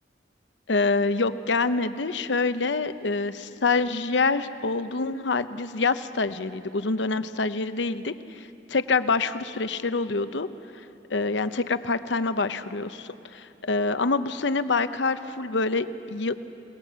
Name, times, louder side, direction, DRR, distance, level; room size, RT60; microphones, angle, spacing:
voice 1, 0.7-10.5 11.1-16.4, left 3 dB, 85° left, 11 dB, 0.8 m, -26 dB
27.5 x 19.0 x 7.4 m, 2.6 s
head